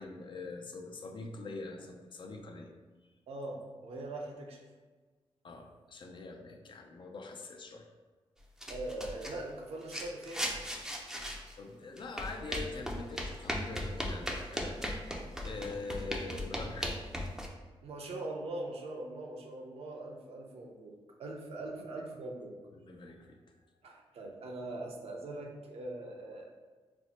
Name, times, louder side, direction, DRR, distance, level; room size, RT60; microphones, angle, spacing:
voice 1, 0.0-2.7 5.4-7.9 11.6-14.8 15.4-17.0 21.7-22.0 22.7-23.4, left 3 dB, 50° left, 3 dB, 0.4 m, -44 dB
voice 2, 3.3-4.6 8.7-10.4 17.8-20.9 21.2-22.5 23.8-26.5, right 2 dB, 70° right, 1 dB, 0.6 m, -41 dB
sound 1, 8.6-9.4 9.9-11.5 12.0-17.5, equal, 5° right, 0.4 m, -37 dB
4.3 x 2.1 x 2.8 m, 1.4 s
cardioid pair, 85°, 11 cm